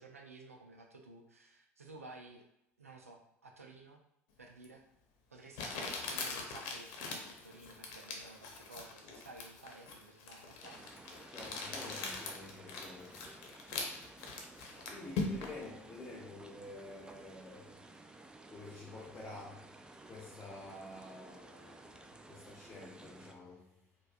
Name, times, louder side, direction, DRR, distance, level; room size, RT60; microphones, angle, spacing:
voice 1, 0.0-2.4 2.8-4.0 4.4-4.8 5.3-10.9 14.9-15.1, right 2 dB, 90° right, 0.5 m, -54 dB
Crumpling crinkling, 4.6-4.7 5.5-15.6, left 4 dB, 60° left, 0.7 m, -42 dB
sound 1, 10.6-23.3, right 2 dB, 10° right, 0.4 m, -55 dB
voice 2, 11.3-13.3 14.9-19.7 20.0-23.8, left 2 dB, 25° left, 0.8 m, -50 dB
4.6 x 2.2 x 2.4 m
figure-of-eight pair, 70°, 8 cm